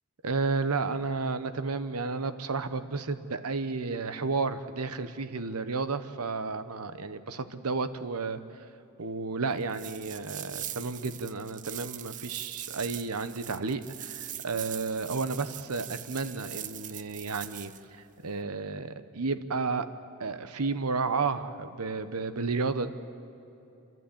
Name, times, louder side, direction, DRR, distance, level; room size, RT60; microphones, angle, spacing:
voice 1, 0.2-8.4 9.0-17.7 18.2-19.9 20.2-22.9, right 4 dB, 80° right, 12 dB, 1.0 m, -32 dB
sound 1, 9.7-17.8, right 12 dB, 35° right, 0.5 m, -41 dB
29.0 x 12.5 x 8.6 m, 2.9 s
head